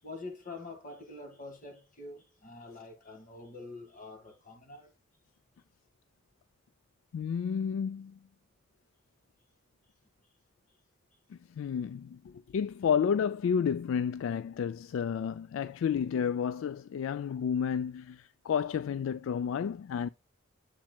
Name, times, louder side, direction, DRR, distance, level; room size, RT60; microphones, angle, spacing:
voice 1, 0.0-4.9, left 2 dB, 40° left, 1.9 m, -46 dB
voice 2, 7.1-8.2 11.3-20.1, left 7 dB, 70° left, 0.3 m, -31 dB
7.4 x 7.3 x 2.3 m
head